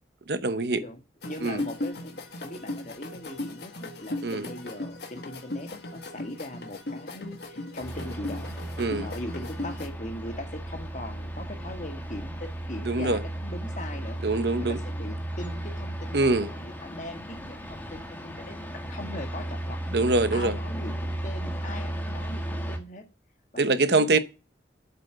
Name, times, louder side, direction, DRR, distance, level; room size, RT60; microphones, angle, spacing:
voice 1, 0.3-0.8 1.4-1.6 4.2-4.5 8.8-9.1 12.9-13.2 14.2-14.8 16.1-16.5 19.9-20.5 23.6-24.2, right 3 dB, 65° right, 0.9 m, -24 dB
voice 2, 0.8-8.6 9.0-14.2 14.6-19.8 20.3-23.1 23.5-24.2, left 1 dB, 40° left, 1.7 m, -40 dB
sound 1, 1.2-9.9, left 2 dB, 65° left, 1.6 m, -37 dB
sound 2, 7.8-22.8, right 1 dB, 10° left, 1.7 m, -35 dB
7.9 x 5.4 x 7.5 m
head